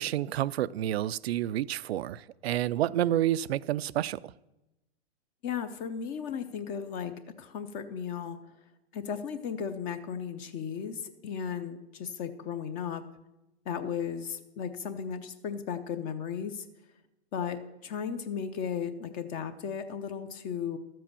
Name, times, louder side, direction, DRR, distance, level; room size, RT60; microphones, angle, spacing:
voice 1, 0.0-4.2, right 13 dB, 70° right, 19 dB, 0.5 m, -29 dB
voice 2, 5.4-7.1 7.4-8.4 8.9-13.0 13.7-16.6 17.3-20.8, left 7 dB, 25° left, 9 dB, 0.6 m, -35 dB
13.0 x 7.6 x 6.9 m, 0.97 s
hypercardioid pair, 130°, 33 cm